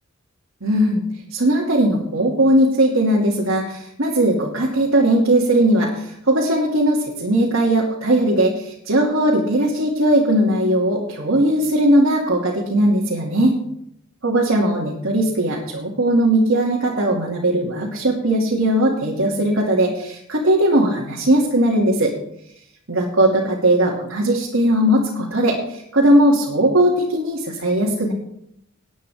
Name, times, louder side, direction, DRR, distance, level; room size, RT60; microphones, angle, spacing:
voice 1, 0.6-1.0 1.3-13.6 14.2-22.1 22.9-28.1, right 1 dB, 90° right, -3 dB, 2.5 m, -18 dB
19.0 x 9.1 x 3.6 m, 0.75 s
head